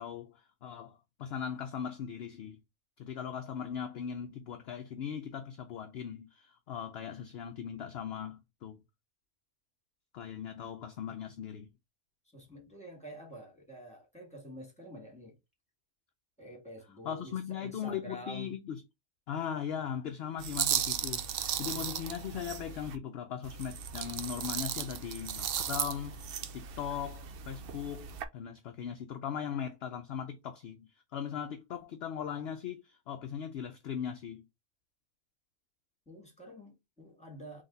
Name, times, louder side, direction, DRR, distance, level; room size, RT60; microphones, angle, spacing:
voice 1, 0.0-2.6 3.0-8.8 10.1-11.7 17.0-18.8 19.3-34.5, left 8 dB, 60° left, 0.7 m, -39 dB
voice 2, 12.3-15.4 16.4-18.5 20.3-20.4 36.1-37.6, equal, 5° left, 1.9 m, -48 dB
sound 1, 20.4-23.0 23.4-28.3, right 9 dB, 60° right, 0.6 m, -36 dB
4.0 x 3.3 x 3.9 m
omnidirectional pair, 1.4 m